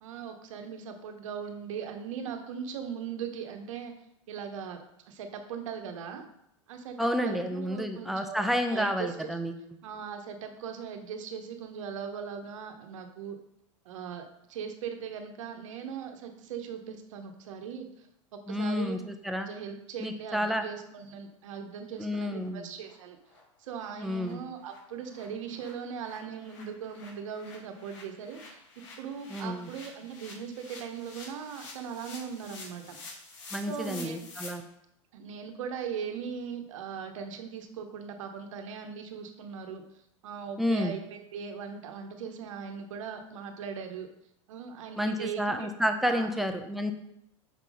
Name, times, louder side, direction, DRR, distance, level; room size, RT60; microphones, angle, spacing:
voice 1, 0.0-3.9 4.3-6.2 6.7-9.4 9.8-13.4 13.8-19.0 19.3-23.2 23.6-28.6 29.0-33.0 33.7-34.2 35.1-39.8 40.2-44.1 44.5-45.7 46.0-46.5, right 7 dB, 75° right, 5 dB, 1.0 m, -39 dB
voice 2, 7.0-9.5 18.5-19.5 20.0-20.6 22.0-22.7 24.0-24.4 29.3-29.7 33.5-34.6 40.6-40.9 45.0-46.9, equal, ahead, 5 dB, 0.6 m, -30 dB
sound 1, 21.5-21.6 21.9-22.0 22.4-22.5 22.8-22.9 23.3-23.4 23.7-23.9 24.2-24.3 24.6-34.5, left 3 dB, 65° left, 2.3 m, -49 dB
5.8 x 3.7 x 4.9 m, 0.78 s
hypercardioid pair, 105°, 17 cm